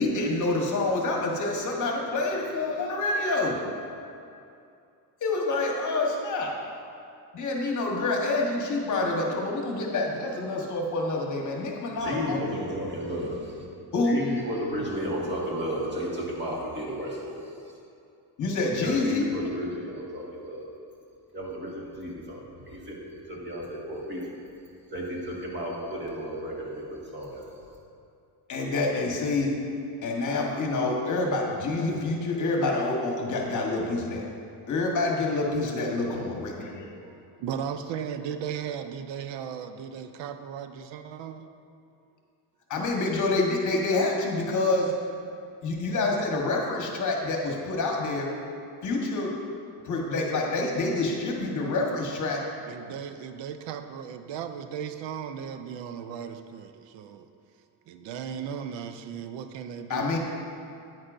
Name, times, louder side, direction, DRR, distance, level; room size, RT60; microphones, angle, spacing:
voice 1, 0.0-3.6 5.2-6.6 7.3-12.4 13.9-14.2 18.4-19.3 28.5-29.6 30.0-34.2 34.7-36.9 42.7-45.0 45.6-48.4 48.8-49.4 49.8-52.4 59.9-60.2, left 2 dB, 45° left, 0 dB, 1.2 m, -27 dB
voice 2, 12.0-13.7 14.0-17.5 18.8-20.7 21.3-23.0 23.3-24.4 24.9-27.6, equal, 25° right, -4 dB, 1.7 m, -33 dB
voice 3, 37.1-41.5 52.7-57.3 57.9-60.1, right 8 dB, 80° right, 8 dB, 0.6 m, -36 dB
9.7 x 9.3 x 2.6 m, 2.5 s
cardioid pair, 140°, 42 cm